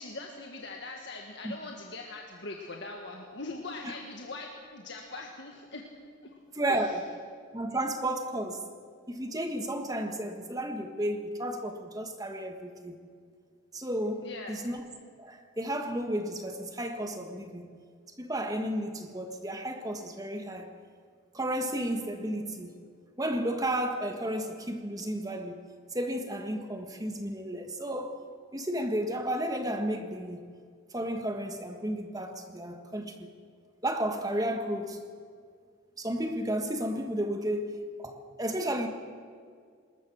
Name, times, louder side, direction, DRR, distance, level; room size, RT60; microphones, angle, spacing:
voice 1, 0.0-5.8 6.2-6.4 6.7-6.9 14.2-14.5, left 3 dB, 55° left, 1.6 m, -41 dB
voice 2, 6.5-7.0 7.5-8.6 9.1-13.0 13.7-14.8 15.2-17.8 18.2-20.7 21.3-22.7 23.2-25.6 25.9-28.2 28.5-30.4 30.9-33.3 33.8-35.0 36.0-38.9, right 1 dB, 15° right, 1.4 m, -33 dB
20.5 x 20.0 x 6.3 m
head